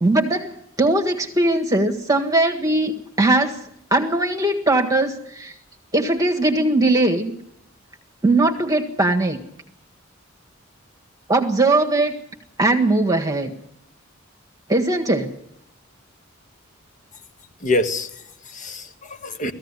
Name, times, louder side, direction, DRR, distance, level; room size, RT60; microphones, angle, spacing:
voice 1, 0.0-3.6 3.9-5.5 5.9-7.3 8.2-9.4 11.3-12.1 12.6-13.5 14.7-15.3, right 2 dB, 20° right, 2 dB, 1.7 m, -20 dB
voice 2, 17.6-19.5, left 1 dB, 40° left, 9 dB, 1.6 m, -26 dB
18.0 x 15.0 x 9.8 m, 0.73 s
head